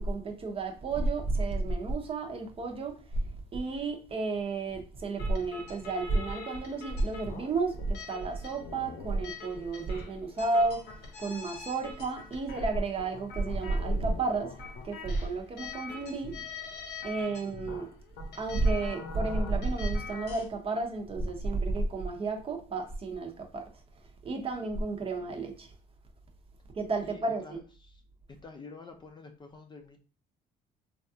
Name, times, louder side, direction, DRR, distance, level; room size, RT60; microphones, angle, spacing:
voice 1, 0.0-16.4 17.0-17.9 18.3-23.7 24.2-25.7 26.7-27.6, right 3 dB, 35° right, 0.7 m, -31 dB
sound 1, 5.2-20.5, left 5 dB, 75° left, 0.8 m, -44 dB
voice 2, 17.1-17.5 25.0-25.2 27.0-28.0 28.4-30.0, left 4 dB, 25° left, 0.5 m, -49 dB
3.3 x 2.3 x 2.7 m
cardioid pair, 110°, 17 cm